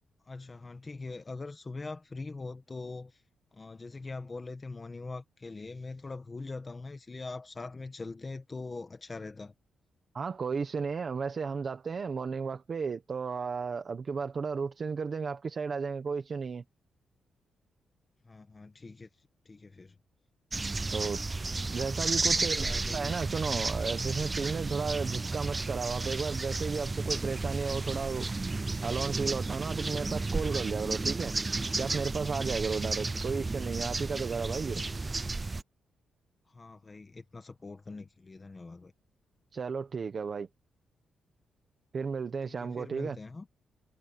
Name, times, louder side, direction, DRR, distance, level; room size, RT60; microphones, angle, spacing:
voice 1, 0.3-3.2 3.5-9.5 18.2-19.1 19.5-20.0 22.2-23.1 32.9-33.5 36.5-38.9 42.5-43.5, left 3 dB, 20° left, 1.6 m, -42 dB
voice 2, 10.1-16.6 20.9-21.2 21.7-28.3 28.8-31.4 31.8-34.8 39.5-40.5 41.9-43.2, right 5 dB, 35° right, 1.2 m, -34 dB
sound 1, 20.5-35.6, right 3 dB, 15° right, 0.5 m, -32 dB
wide cardioid pair, 175°, 0 cm